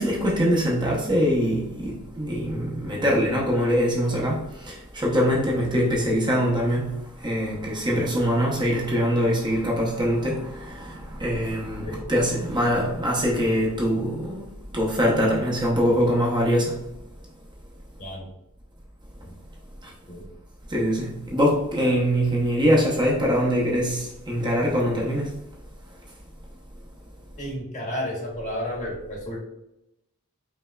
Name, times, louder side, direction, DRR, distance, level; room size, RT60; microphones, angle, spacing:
voice 1, 0.0-16.9 19.8-19.9 20.7-25.4, equal, 20° right, 0.8 m, -23 dB
voice 2, 27.4-29.4, equal, 35° left, 1.2 m, -32 dB
5.3 x 3.4 x 2.3 m
head